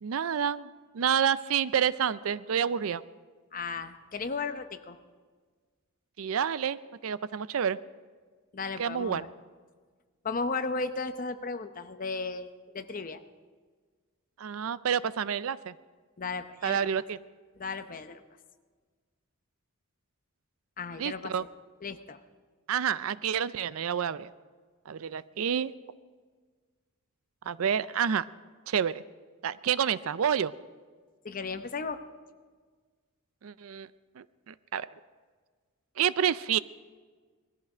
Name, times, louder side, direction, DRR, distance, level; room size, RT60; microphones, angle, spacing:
voice 1, 0.0-3.0 6.2-7.8 8.8-9.2 14.4-15.7 16.6-17.2 21.0-21.4 22.7-24.3 24.9-25.7 27.5-28.3 28.7-29.0 29.4-30.5 33.4-33.9 34.2-34.9 36.0-36.6, right 8 dB, 70° right, 17 dB, 0.4 m, -29 dB
voice 2, 3.5-5.0 8.5-9.3 10.2-12.5 12.7-13.2 16.2-16.8 17.6-18.2 20.8-21.3 21.8-22.2 31.2-32.0, left 4 dB, 40° left, 9 dB, 0.8 m, -35 dB
20.0 x 14.0 x 5.0 m, 1.5 s
head